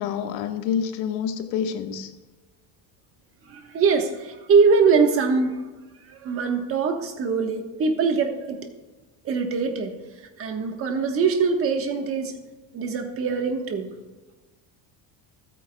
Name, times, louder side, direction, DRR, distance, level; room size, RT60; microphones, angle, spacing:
voice 1, 0.0-2.1, left 8 dB, 80° left, 5 dB, 1.5 m, -27 dB
voice 2, 3.4-5.5 6.1-8.6 9.2-12.3 12.7-13.9, right 5 dB, 30° right, 4 dB, 1.3 m, -23 dB
26.5 x 9.2 x 2.3 m, 1.2 s
cardioid pair, 175°, 46 cm